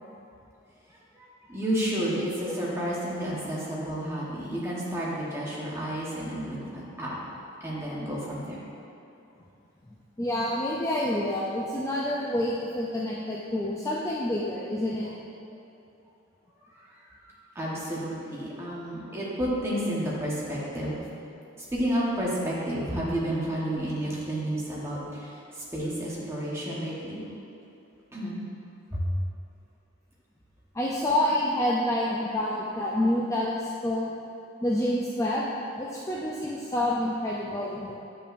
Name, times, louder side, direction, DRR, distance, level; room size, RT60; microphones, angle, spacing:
voice 1, 0.9-7.2 7.6-8.7 16.7-17.0 17.2-21.0 21.7-27.2 28.1-28.4 28.9-29.1, right 1 dB, 15° right, -6 dB, 1.1 m, -31 dB
voice 2, 9.9-15.1 30.7-34.1 34.6-37.9, left 1 dB, 15° left, -5 dB, 0.4 m, -28 dB
8.5 x 5.3 x 2.5 m, 2.8 s
head